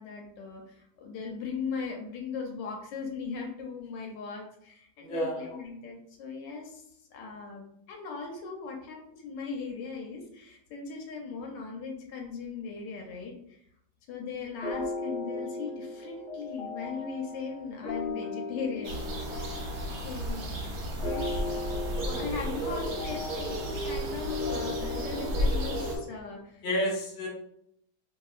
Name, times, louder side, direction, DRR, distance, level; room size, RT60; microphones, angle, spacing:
voice 1, 0.0-6.8 7.1-13.6 14.1-19.6 20.0-20.6 21.0-26.6, left 5 dB, 75° left, 1 dB, 1.2 m, -39 dB
voice 2, 5.0-5.5 26.6-27.3, equal, 45° left, -2 dB, 0.7 m, -30 dB
sound 1, 14.6-26.0, left 3 dB, 5° right, 0.5 m, -37 dB
sound 2, 18.8-26.0, right 1 dB, 65° right, 1.0 m, -33 dB
2.9 x 2.7 x 2.4 m, 0.72 s
omnidirectional pair, 2.0 m